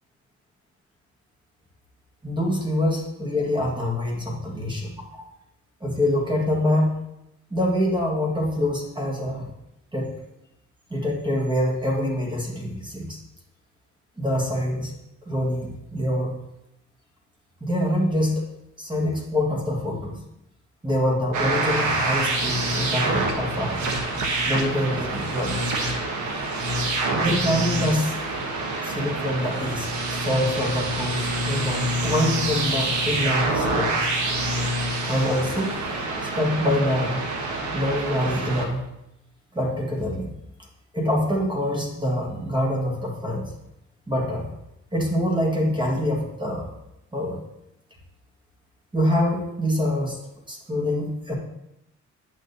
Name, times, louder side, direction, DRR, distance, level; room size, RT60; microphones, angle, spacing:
voice 1, 2.2-5.2 5.8-7.0 7.5-9.5 9.9-10.2 10.9-13.2 14.2-14.9 15.2-16.4 17.6-18.4 18.8-20.2 20.8-23.8 24.5-25.7 27.2-28.1 28.8-34.0 35.1-35.8 36.4-37.2 37.7-38.8 39.5-40.3 40.9-43.5 44.1-44.5 44.9-46.7 47.1-47.4 48.9-50.2 50.5-51.3, left 1 dB, 15° right, -1 dB, 1.7 m, -25 dB
sound 1, 21.3-38.7, right 2 dB, 75° right, 1.2 m, -26 dB
8.6 x 6.1 x 2.8 m, 0.85 s
cardioid pair, 90°, 30 cm